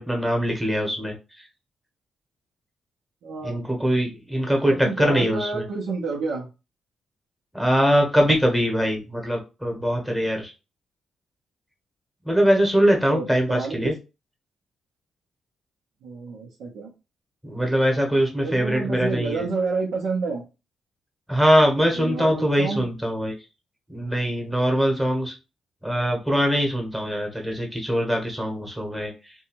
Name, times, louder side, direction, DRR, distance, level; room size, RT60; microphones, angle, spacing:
voice 1, 0.0-1.5 3.4-5.6 7.5-10.5 12.2-13.9 17.4-19.5 21.3-23.3 23.9-25.3 25.8-29.3, equal, 5° right, 1 dB, 1.0 m, -22 dB
voice 2, 3.2-3.6 4.8-6.5 13.1-13.9 16.0-16.9 18.4-20.4 21.9-22.8, right 4 dB, 90° right, -4 dB, 0.7 m, -29 dB
2.7 x 2.3 x 2.9 m, 0.29 s
cardioid pair, 95°, 0 cm